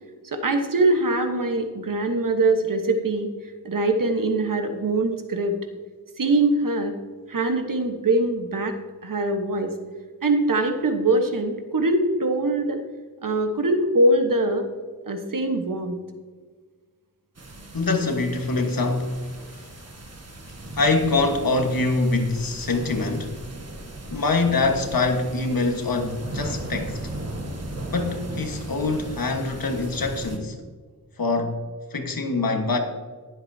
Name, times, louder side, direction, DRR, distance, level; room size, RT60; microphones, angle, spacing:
voice 1, 0.2-3.3 3.6-5.5 6.2-6.9 7.3-8.8 9.0-9.7 10.2-12.8 13.2-14.7 15.1-16.0, right 2 dB, 60° right, 1.3 m, -22 dB
sound 1, 17.3-30.4, right 1 dB, 45° right, 1.7 m, -37 dB
voice 2, 17.7-19.6 20.8-23.3 24.1-27.0 27.9-30.6 31.2-31.6 31.9-32.8, left 3 dB, 70° left, 1.5 m, -24 dB
20.0 x 7.9 x 2.8 m
wide cardioid pair, 90°, 36 cm